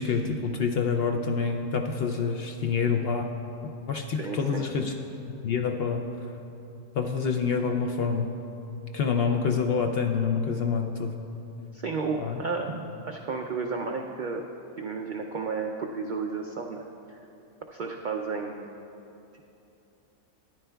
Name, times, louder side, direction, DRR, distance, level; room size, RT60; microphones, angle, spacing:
voice 1, 0.0-3.3 3.9-4.9 5.4-6.0 7.0-8.3 8.9-11.1 12.2-12.4, left 5 dB, 65° left, 4 dB, 0.6 m, -27 dB
voice 2, 4.1-4.7 11.7-14.4 14.8-17.2 17.7-18.7, right 4 dB, 80° right, 2 dB, 0.4 m, -32 dB
13.5 x 10.5 x 2.3 m, 2.9 s
omnidirectional pair, 1.4 m